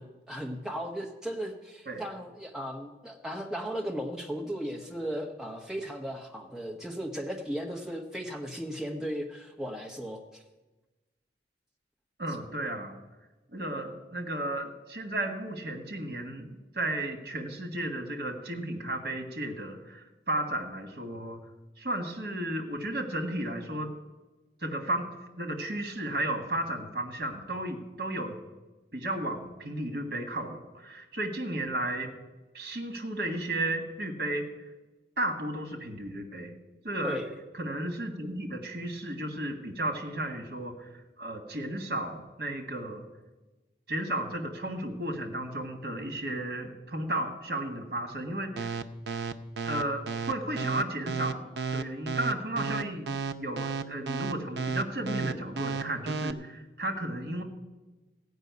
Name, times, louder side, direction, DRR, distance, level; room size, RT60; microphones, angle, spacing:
voice 1, 0.0-10.4 37.0-37.3, equal, 5° right, 1 dB, 1.2 m, -36 dB
voice 2, 12.2-13.0 13.5-21.4 21.8-23.9 24.6-28.3 28.9-32.1 32.5-34.5 35.2-36.5 36.8-37.2 37.6-40.9 41.2-43.0 43.9-48.8 49.6-57.4, right 1 dB, 55° right, 4 dB, 1.7 m, -34 dB
sound 1, 48.6-56.3, right 5 dB, 80° right, 0.6 m, -32 dB
15.0 x 5.5 x 9.4 m, 1.1 s
head